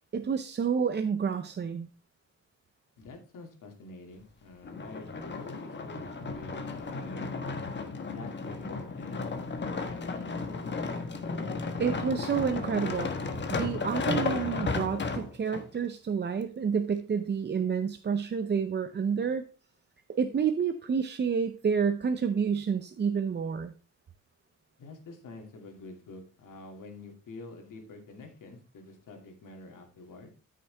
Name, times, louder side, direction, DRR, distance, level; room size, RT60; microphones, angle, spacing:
voice 1, 0.1-1.9 11.8-19.5 20.1-23.7, right 6 dB, 35° right, 8 dB, 0.6 m, -29 dB
voice 2, 3.0-7.3 8.1-10.6 24.8-30.3, left 2 dB, 80° left, 3 dB, 2.5 m, -47 dB
sound 1, 4.6-15.6 16.3-16.4, left 4 dB, 35° left, 1.2 m, -34 dB
13.5 x 6.5 x 3.4 m, 0.33 s
wide cardioid pair, 160°, 31 cm